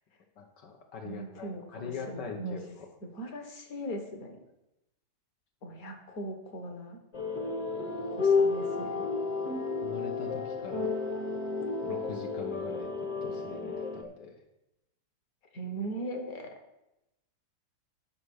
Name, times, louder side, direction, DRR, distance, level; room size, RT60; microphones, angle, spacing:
voice 1, 0.4-2.9 8.0-8.3 9.8-10.9 11.8-14.4, left 5 dB, 75° left, 2 dB, 1.6 m, -43 dB
voice 2, 1.0-2.6 3.0-4.4 5.6-7.0 8.1-9.1 15.5-16.5, right 1 dB, 55° left, 5 dB, 1.8 m, -39 dB
sound 1, 7.1-14.0, left 4 dB, 35° left, 1.0 m, -31 dB
9.9 x 6.1 x 6.3 m, 0.91 s
omnidirectional pair, 1.9 m